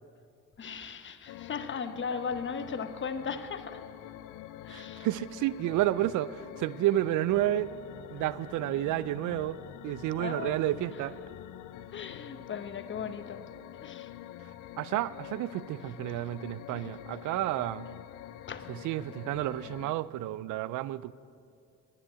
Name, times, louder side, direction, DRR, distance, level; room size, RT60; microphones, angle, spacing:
voice 1, 0.6-3.8 4.6-5.1 10.2-10.8 11.9-13.4 13.8-14.1 18.5-18.7, left 6 dB, 40° left, 10 dB, 0.9 m, -37 dB
sound 1, 1.3-19.9, left 12 dB, 85° left, 0.5 m, -46 dB
voice 2, 4.7-7.7 8.1-9.6 9.8-11.2 14.8-17.9 18.7-21.1, right 14 dB, 80° right, 18 dB, 0.5 m, -30 dB
10.0 x 9.9 x 8.5 m, 2.4 s
cardioid pair, 90°, 30 cm